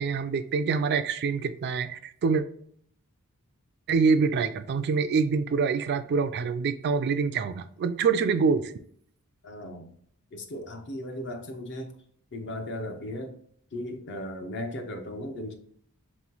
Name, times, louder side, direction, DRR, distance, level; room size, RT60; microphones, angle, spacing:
voice 1, 0.0-2.4 3.9-8.7, right 5 dB, 50° right, 10 dB, 0.3 m, -25 dB
voice 2, 9.4-9.9 10.3-11.9 12.3-13.3 13.7-15.6, left 1 dB, 55° left, 5 dB, 0.7 m, -36 dB
3.6 x 3.0 x 3.8 m, 0.63 s
head